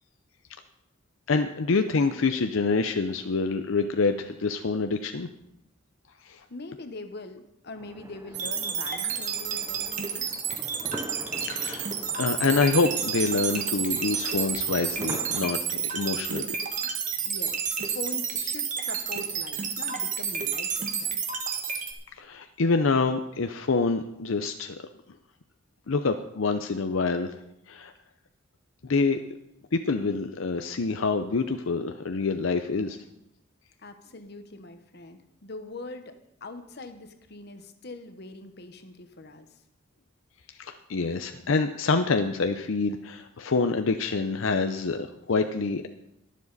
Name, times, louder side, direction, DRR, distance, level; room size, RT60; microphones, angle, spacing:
voice 1, 1.3-5.3 6.3-6.4 11.5-11.9 12.2-16.5 22.2-24.7 25.9-27.3 27.7-27.9 28.8-29.2 29.7-33.0 40.6-45.9, left 4 dB, 75° left, 7 dB, 0.6 m, -26 dB
voice 2, 6.5-10.3 17.3-21.4 33.8-36.1 36.4-39.6, left 2 dB, 55° left, 8 dB, 1.1 m, -42 dB
sound 1, 7.8-15.4, right 2 dB, 15° right, 0.5 m, -44 dB
sound 2, 8.3-21.9, right 7 dB, 40° right, 1.4 m, -30 dB
22.5 x 7.4 x 4.1 m, 0.83 s
head